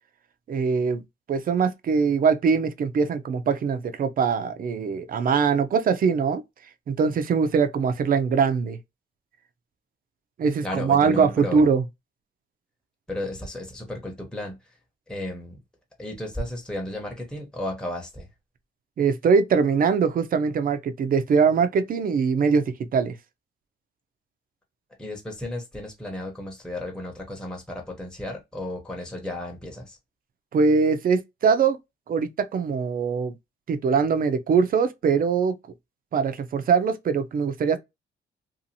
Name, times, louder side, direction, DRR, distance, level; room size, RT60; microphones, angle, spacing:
voice 1, 0.5-1.0 1.3-6.4 6.9-8.8 10.4-11.8 19.0-22.6 22.9-23.2 30.5-31.8 32.1-33.3 33.7-35.5 36.1-37.8, right 5 dB, 45° right, 0.5 m, -22 dB
voice 2, 10.6-11.7 13.1-14.6 15.1-15.6 16.0-18.3 25.0-30.0, left 1 dB, 5° left, 0.8 m, -34 dB
2.7 x 2.4 x 2.6 m
cardioid pair, 90°, 20 cm